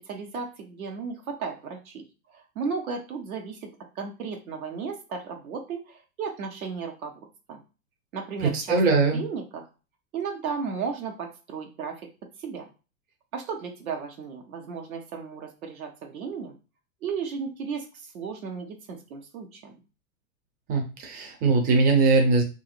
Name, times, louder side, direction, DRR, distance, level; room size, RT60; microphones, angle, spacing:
voice 1, 0.1-2.0 2.3-7.1 7.5-7.6 8.1-9.7 10.1-12.7 13.3-16.5 17.0-19.8, right 5 dB, 65° right, 2 dB, 1.0 m, -35 dB
voice 2, 8.5-9.2 20.7-22.4, right 3 dB, 20° right, 2 dB, 0.5 m, -21 dB
2.9 x 2.6 x 2.5 m, 0.32 s
hypercardioid pair, 115°, 46 cm